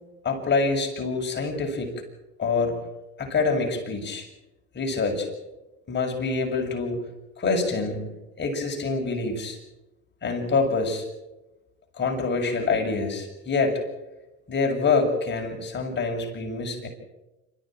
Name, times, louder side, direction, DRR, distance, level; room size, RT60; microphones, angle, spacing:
voice 1, 0.2-1.9 2.4-2.8 3.2-4.3 4.7-5.3 5.9-7.0 7.4-9.6 10.2-11.0 11.9-13.8 14.5-16.9, left 4 dB, 35° left, 2 dB, 7.0 m, -26 dB
26.5 x 14.5 x 9.1 m, 1.0 s
supercardioid pair, 90°, 32 cm